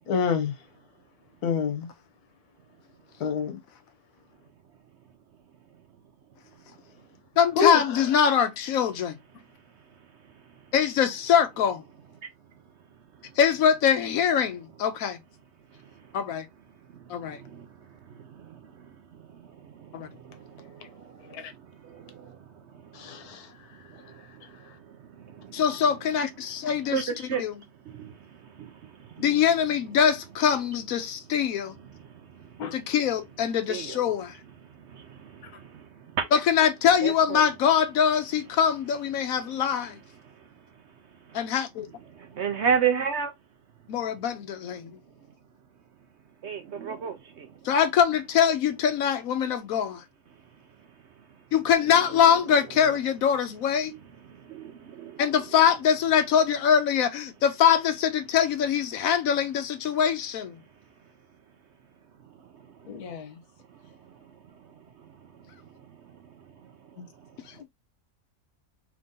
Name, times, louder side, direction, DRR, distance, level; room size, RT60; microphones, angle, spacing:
voice 1, 0.1-0.5 1.4-1.9 3.2-3.6 7.6-8.0 21.3-21.5 22.9-23.5 32.6-32.8 62.9-63.4 67.6-67.7, left 6 dB, 90° left, 1.3 m, -28 dB
voice 2, 7.4-9.2 10.7-11.8 13.4-15.2 16.1-16.5 17.1-17.4 19.9-20.1 25.5-27.1 27.4-27.5 29.2-31.8 32.7-34.4 36.3-40.0 41.3-41.9 43.9-45.0 47.6-50.0 51.5-53.9 55.2-60.6 67.0-67.1, left 8 dB, 70° left, 1.0 m, -23 dB
voice 3, 9.4-10.7 12.2-13.4 15.7-16.2 16.7-26.0 26.4-29.4 31.7-32.9 33.7-34.2 34.6-36.3 37.0-37.5 39.2-41.5 42.0-43.3 43.9-44.0 44.7-45.4 46.4-47.7 50.3-53.0 53.9-55.6 60.6-61.4 62.0-67.6, right 7 dB, 60° right, 0.8 m, -37 dB
3.4 x 2.6 x 3.6 m
omnidirectional pair, 1.6 m